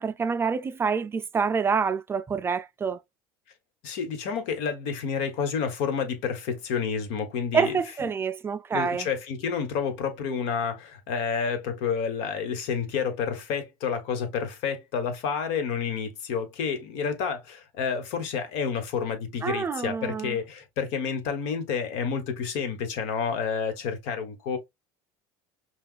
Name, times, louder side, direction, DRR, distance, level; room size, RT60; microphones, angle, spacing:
voice 1, 0.0-3.0 7.5-9.1 19.4-20.4, right 6 dB, 20° right, 0.3 m, -27 dB
voice 2, 3.8-7.8 8.7-24.6, left 6 dB, 70° left, 1.2 m, -29 dB
5.7 x 2.3 x 2.4 m
supercardioid pair, 115°, 11 cm